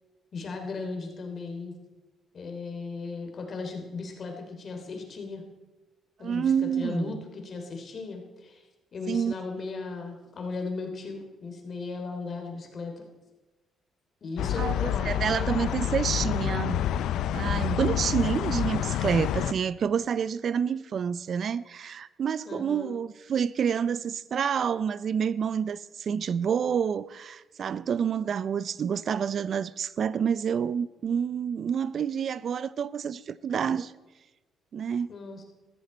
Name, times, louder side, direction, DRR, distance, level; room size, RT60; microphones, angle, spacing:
voice 1, 0.3-1.7 2.3-5.4 6.2-8.6 8.9-13.0 14.2-15.7 22.4-22.9 35.1-35.4, left 4 dB, 50° left, 3.1 m, -37 dB
voice 2, 6.2-7.2 9.1-9.3 14.6-16.8 17.3-33.9 34.7-35.1, right 7 dB, 55° right, 0.4 m, -28 dB
sound 1, 14.4-19.5, left 10 dB, 80° left, 0.4 m, -28 dB
14.5 x 14.0 x 4.3 m
cardioid pair, 90°, 0 cm